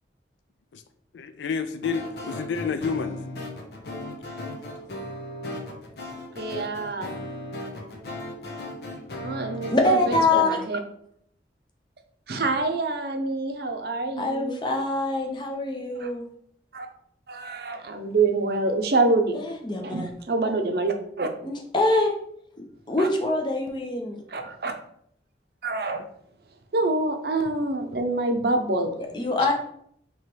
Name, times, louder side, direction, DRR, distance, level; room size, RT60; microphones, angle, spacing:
voice 1, 1.1-3.2, left 5 dB, 90° left, 0.4 m, -29 dB
sound 1, 1.8-10.2, left 1 dB, 65° left, 0.7 m, -37 dB
voice 2, 6.3-7.2 9.2-10.8 12.3-14.6 16.0-16.1 16.7-16.9 17.3-19.4 19.8-21.3 23.0-23.1 24.3-24.7 25.6-26.0 26.7-29.0 29.4-29.5, right 2 dB, 60° right, 0.6 m, -26 dB
voice 3, 9.7-10.6 14.2-16.2 19.3-20.1 21.4-22.1 22.9-24.2 29.0-29.5, left 2 dB, 25° left, 0.6 m, -24 dB
3.2 x 3.0 x 4.4 m
head